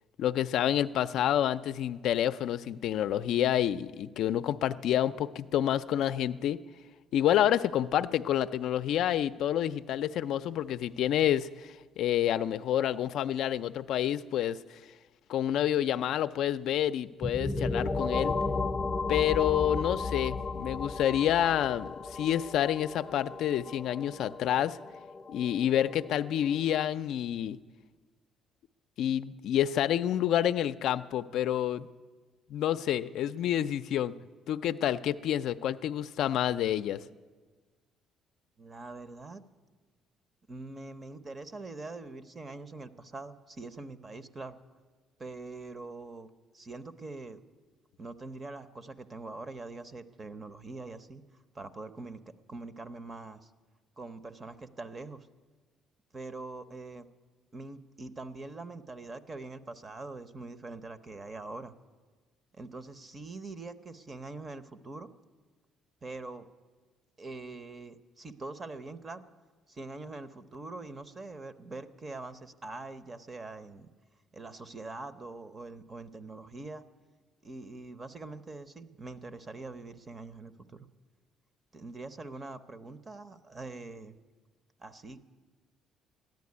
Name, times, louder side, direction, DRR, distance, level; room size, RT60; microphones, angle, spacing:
voice 1, 0.2-6.6 7.1-14.6 15.3-18.4 19.1-24.8 25.3-27.6 29.0-31.9 32.5-34.1 34.5-37.0, left 11 dB, 70° left, 11 dB, 0.4 m, -28 dB
sound 1, 17.2-26.8, left 3 dB, 20° left, 0.6 m, -34 dB
voice 2, 38.6-39.4 40.5-44.6 45.2-47.4 48.0-51.2 51.5-53.5 54.0-55.3 56.1-57.1 57.5-61.7 62.5-65.1 66.0-66.5 67.2-69.2 69.7-73.9 74.3-76.8 77.4-80.9 81.7-84.2 84.8-85.2, right 3 dB, 25° right, 13 dB, 0.7 m, -43 dB
14.0 x 10.5 x 9.5 m, 1.4 s
cardioid pair, 130°, 0 cm